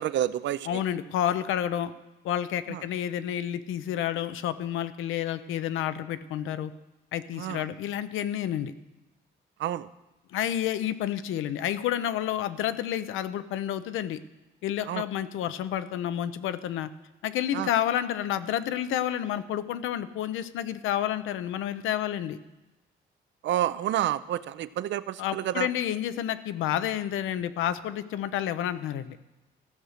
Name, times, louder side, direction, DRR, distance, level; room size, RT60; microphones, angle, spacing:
voice 1, 0.0-0.8 2.7-2.8 7.4-7.6 9.6-9.9 14.9-15.1 17.5-17.7 23.4-25.7, right 12 dB, 65° right, 16 dB, 0.5 m, -29 dB
voice 2, 0.7-1.9 2.2-6.7 7.1-8.7 10.3-14.2 14.6-16.9 17.2-22.4 25.2-29.2, left 11 dB, 85° left, 12 dB, 0.6 m, -30 dB
14.5 x 6.3 x 6.5 m, 1.0 s
cardioid pair, 90°, 20 cm